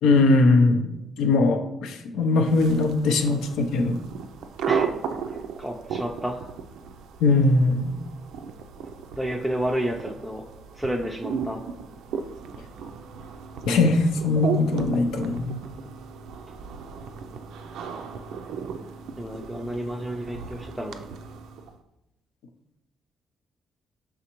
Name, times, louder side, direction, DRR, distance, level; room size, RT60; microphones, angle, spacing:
voice 1, 0.0-4.0 7.2-8.0 13.6-15.6, left 3 dB, 90° left, 5 dB, 0.5 m, -21 dB
sound 1, 2.4-21.8, right 6 dB, 85° right, 0.3 m, -35 dB
voice 2, 5.3-6.5 9.2-10.4 10.7-11.7 19.2-21.1, equal, ahead, -2 dB, 0.4 m, -30 dB
5.0 x 3.5 x 2.9 m, 0.91 s
cardioid pair, 90°, 0 cm